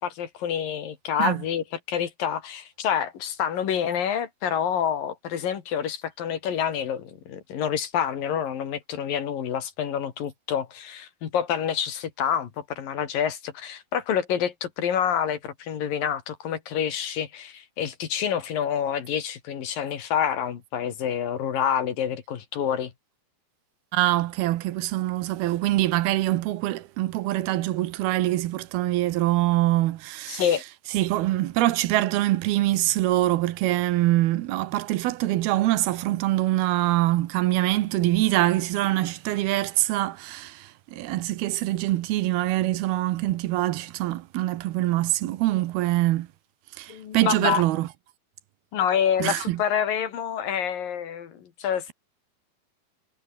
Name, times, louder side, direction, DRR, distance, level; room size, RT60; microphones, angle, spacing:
voice 1, 0.0-22.9 30.3-30.6 46.9-47.6 48.7-51.9, left 8 dB, 65° left, 3.9 m, -27 dB
voice 2, 23.9-30.5 30.9-46.3 46.8-47.9 49.2-49.6, right 16 dB, 80° right, 2.9 m, -24 dB
omnidirectional pair, 4.5 m